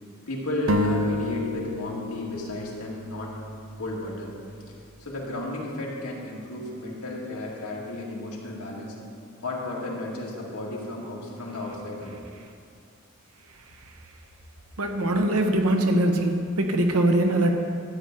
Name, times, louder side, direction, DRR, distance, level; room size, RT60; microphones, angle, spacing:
voice 1, 0.3-3.3 3.8-4.3 4.8-9.0 9.4-12.2, left 1 dB, 85° left, -4 dB, 2.1 m, -33 dB
sound 1, 0.7-4.3, left 1 dB, 60° right, 0.6 m, -30 dB
voice 2, 14.8-17.5, right 1 dB, 80° right, 4 dB, 1.1 m, -22 dB
13.0 x 8.7 x 3.8 m, 2.3 s
head